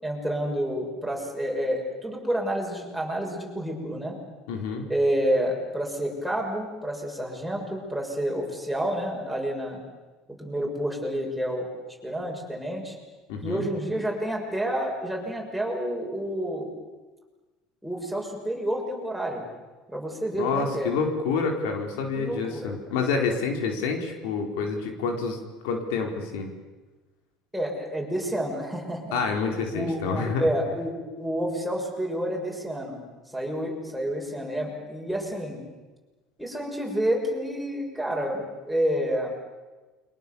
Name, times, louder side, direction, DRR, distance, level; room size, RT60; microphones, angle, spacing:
voice 1, 0.0-4.2 4.9-9.8 10.4-13.0 13.4-16.7 17.8-19.5 19.9-20.9 22.1-22.7 27.5-29.2 29.7-33.0 33.3-35.6 36.4-39.3, equal, ahead, -1 dB, 6.7 m, -29 dB
voice 2, 4.5-4.8 13.3-13.7 20.4-25.4 25.6-26.5 29.1-30.5, left 4 dB, 80° left, 3 dB, 4.5 m, -28 dB
29.0 x 24.5 x 7.2 m, 1.2 s
supercardioid pair, 125°, 0 cm